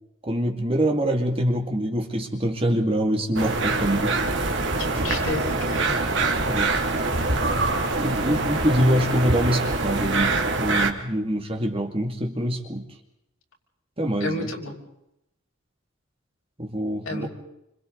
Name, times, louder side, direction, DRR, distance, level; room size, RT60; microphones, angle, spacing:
voice 1, 0.2-4.2 6.5-6.7 8.0-12.9 14.0-14.5 16.6-17.3, equal, 25° right, 2 dB, 2.4 m, -25 dB
sound 1, 3.4-10.9, right 3 dB, 60° right, 2.6 m, -24 dB
voice 2, 4.8-6.0 14.2-14.7 17.0-17.3, left 2 dB, 75° left, -2 dB, 6.1 m, -31 dB
29.5 x 26.5 x 4.0 m, 0.82 s
head